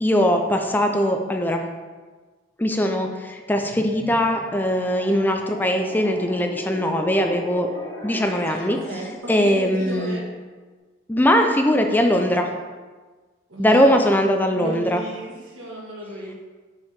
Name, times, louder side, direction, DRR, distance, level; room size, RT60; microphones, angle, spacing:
voice 1, 0.0-1.6 2.6-7.7 8.0-8.8 9.3-10.2 11.1-12.5 13.6-15.0, equal, 10° left, 4 dB, 0.5 m, -20 dB
sound 1, 3.5-9.2, equal, 90° left, 1.6 m, -37 dB
voice 2, 8.7-10.2 13.5-14.1 14.4-16.3, right 2 dB, 85° right, -2 dB, 1.7 m, -34 dB
5.6 x 4.6 x 5.2 m, 1.4 s
head